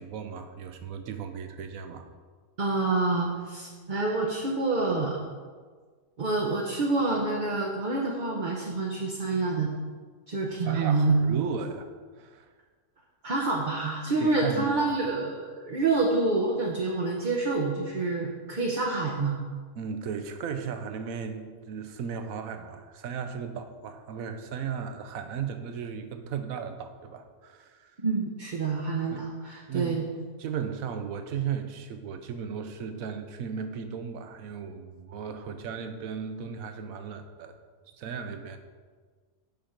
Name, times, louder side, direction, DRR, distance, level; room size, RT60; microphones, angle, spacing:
voice 1, 0.0-2.1 3.7-4.0 10.6-11.9 12.2-12.5 14.2-14.7 19.8-27.9 29.1-29.2 29.7-30.0 30.4-37.5 37.9-38.6, right 7 dB, 75° right, 8 dB, 1.1 m, -36 dB
voice 2, 2.6-5.2 6.2-9.7 10.3-11.4 13.2-19.4 28.0-30.0, right 3 dB, 40° right, -2 dB, 0.9 m, -27 dB
7.1 x 5.9 x 5.0 m, 1.5 s
omnidirectional pair, 1.5 m